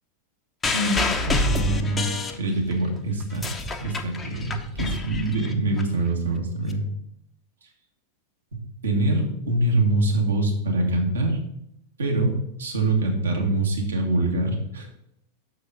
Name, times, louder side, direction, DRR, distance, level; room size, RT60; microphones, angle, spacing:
sound 1, 0.6-2.8 3.2-5.8 6.7-6.8, left 2 dB, 15° left, 0.7 m, -27 dB
voice 1, 1.3-3.5 3.8-6.8 8.5-11.4 12.0-14.9, right 2 dB, 70° right, 1 dB, 1.6 m, -24 dB
6.3 x 4.7 x 5.5 m, 0.77 s
figure-of-eight pair, 90°, 0 cm